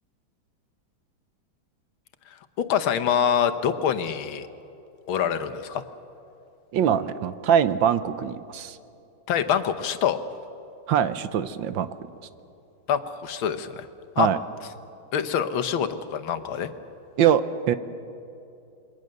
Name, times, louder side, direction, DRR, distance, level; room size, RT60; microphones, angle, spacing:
voice 1, 2.6-4.5 5.1-5.8 9.3-10.2 12.9-13.9 14.2-14.3 15.1-16.7, left 8 dB, 75° left, 9 dB, 1.8 m, -25 dB
voice 2, 6.7-8.8 10.9-11.9 14.2-14.4 17.2-17.7, right 9 dB, 70° right, 12 dB, 1.5 m, -22 dB
28.0 x 22.0 x 6.7 m, 2.7 s
omnidirectional pair, 2.3 m